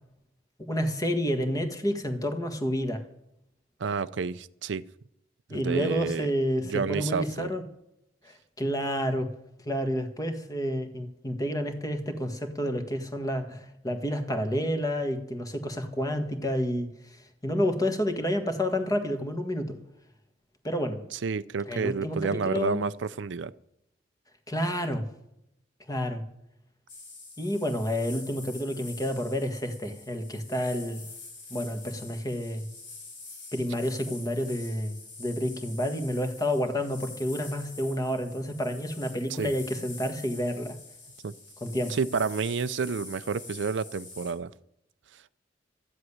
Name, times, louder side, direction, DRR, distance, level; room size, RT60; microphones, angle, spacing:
voice 1, 0.6-3.0 5.5-7.6 8.2-9.3 9.6-16.9 17.4-19.8 20.6-21.0 21.7-22.8 24.5-25.0 25.9-26.2 27.4-31.1 31.5-32.7 33.5-40.8 41.6-42.0, equal, 20° left, 1.6 m, -29 dB
voice 2, 3.8-4.8 5.5-6.3 6.6-7.5 21.1-23.5 39.4-39.5 41.2-41.3 41.9-44.5, right 5 dB, 70° right, 0.5 m, -30 dB
sound 1, 26.9-44.3, left 3 dB, 80° left, 5.7 m, -46 dB
13.5 x 7.8 x 9.9 m
head